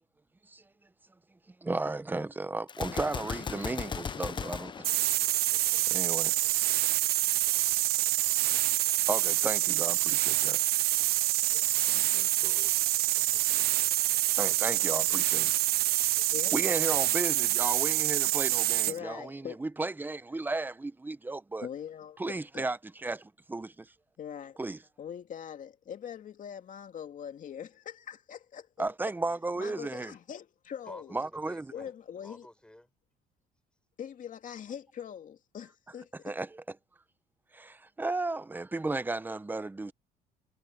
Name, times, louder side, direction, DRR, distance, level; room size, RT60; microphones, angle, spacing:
voice 1, 1.6-4.7 5.9-6.4 9.1-10.6 14.4-15.5 16.5-21.7 22.2-23.9 24.6-24.8 28.8-30.1 31.1-31.7 36.2-36.6 37.5-39.9, right 2 dB, 10° right, 0.8 m, -34 dB
Gunshot gunfire, 2.7-5.8, left 6 dB, 30° left, 0.6 m, -37 dB
sound 1, 4.8-19.0, right 16 dB, 70° right, 0.5 m, -26 dB
voice 2, 11.4-12.7 13.2-13.6 30.9-32.9, left 1 dB, 5° left, 5.8 m, -52 dB
voice 3, 18.9-19.6 21.6-22.7 24.2-24.6 25.0-28.7 29.6-31.2 31.7-32.5 34.0-36.3, left 8 dB, 50° left, 2.5 m, -42 dB
cardioid pair, 110°, 17 cm